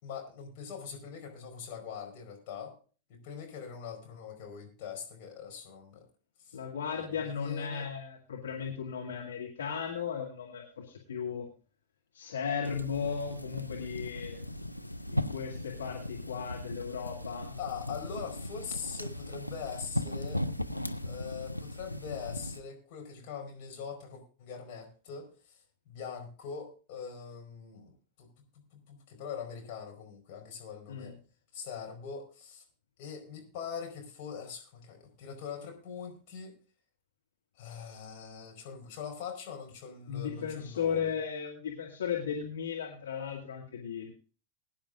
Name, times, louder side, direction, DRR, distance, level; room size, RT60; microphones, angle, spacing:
voice 1, 0.0-2.7 3.1-6.0 6.4-6.6 6.9-7.9 17.6-20.4 21.0-25.6 25.9-27.9 28.2-31.2 31.5-32.6 33.0-36.5 37.6-41.1, left 6 dB, 45° left, 2 dB, 4.9 m, -42 dB
voice 2, 6.5-11.5 12.1-14.4 15.0-17.6 30.9-31.1 40.1-44.1, left 7 dB, 65° left, -1 dB, 2.1 m, -36 dB
sound 1, 12.6-22.6, left 1 dB, 90° left, 0.6 m, -37 dB
21.5 x 10.5 x 2.6 m, 0.38 s
figure-of-eight pair, 90°, 0 cm